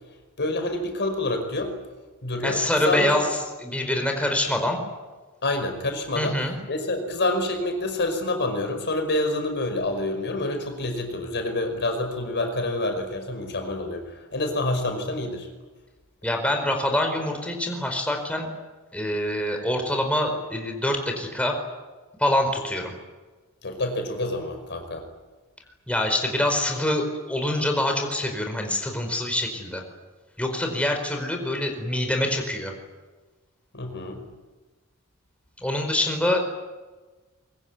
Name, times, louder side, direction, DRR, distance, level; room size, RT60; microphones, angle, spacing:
voice 1, 0.4-1.8 2.2-3.1 5.4-6.4 6.7-15.5 23.6-25.0 33.7-34.2, left 2 dB, 55° left, 6 dB, 5.4 m, -27 dB
voice 2, 2.4-4.8 6.1-6.6 16.2-18.5 18.9-21.5 22.2-22.9 25.9-29.8 30.4-32.7 35.6-36.4, left 1 dB, 5° left, 3 dB, 4.8 m, -25 dB
24.0 x 23.5 x 9.7 m, 1.3 s
head